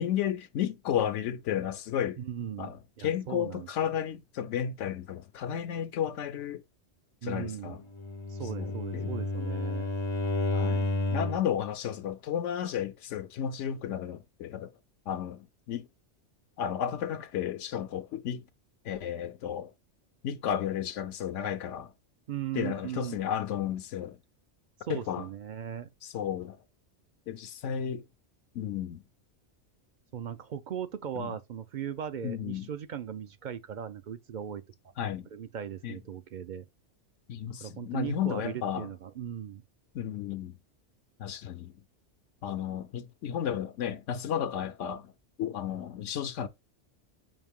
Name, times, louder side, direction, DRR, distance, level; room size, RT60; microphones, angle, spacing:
voice 1, 0.0-2.2 2.6-6.6 7.2-7.8 8.6-9.1 10.5-14.7 15.1-15.9 16.6-18.4 18.8-19.7 20.2-21.9 22.5-24.2 24.9-25.3 26.0-26.6 27.3-28.0 28.5-29.0 31.2-31.4 32.2-32.7 35.0-35.3 35.8-36.0 37.3-38.9 39.9-40.6 41.2-41.7 42.4-45.1 45.4-46.5, left 9 dB, 85° left, 0.9 m, -33 dB
voice 2, 2.2-3.7 7.2-7.8 8.3-9.9 22.3-23.2 24.9-25.9 30.1-34.6 35.3-36.6 37.6-39.6, right 9 dB, 60° right, 0.5 m, -38 dB
Bowed string instrument, 7.9-11.5, left 2 dB, 40° left, 0.4 m, -31 dB
5.2 x 2.6 x 3.5 m
omnidirectional pair, 1.2 m